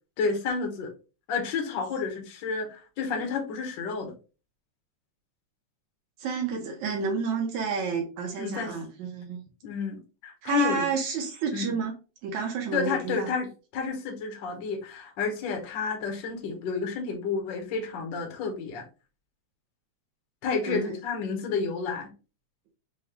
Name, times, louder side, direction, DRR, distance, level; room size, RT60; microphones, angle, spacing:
voice 1, 0.2-0.9 1.3-4.1 8.4-8.7 9.6-10.9 11.5-11.7 12.7-13.5 13.7-18.8 20.4-22.1, left 5 dB, 60° left, 2 dB, 1.2 m, -30 dB
voice 2, 6.2-9.4 10.4-11.9 12.2-13.3 20.6-21.0, right 5 dB, 80° right, 0 dB, 2.4 m, -30 dB
6.1 x 2.3 x 3.6 m, 0.32 s
omnidirectional pair, 3.3 m